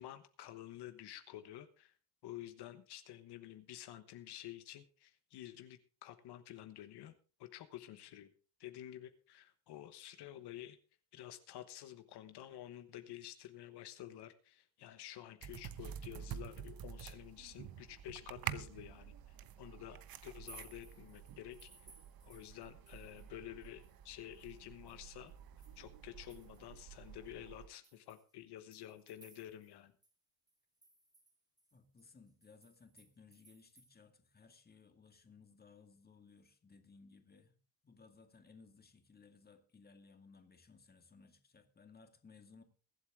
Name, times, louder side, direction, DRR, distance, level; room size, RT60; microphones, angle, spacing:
voice 1, 0.0-2.0 2.2-7.1 7.4-8.3 8.6-10.8 11.1-21.9 22.2-25.3 25.8-29.9, left 12 dB, 80° left, 1.2 m, -51 dB
sound 1, 15.4-27.7, right 10 dB, 65° right, 1.0 m, -49 dB
sound 2, 20.4-23.3 23.6-26.8 27.2-27.3 27.8-29.8 30.0-30.1 30.5-33.9, right 2 dB, 10° right, 2.6 m, -62 dB
voice 2, 31.7-37.6 37.8-42.6, left 4 dB, 25° left, 2.1 m, -61 dB
22.5 x 8.2 x 3.6 m
cardioid pair, 125°, 39 cm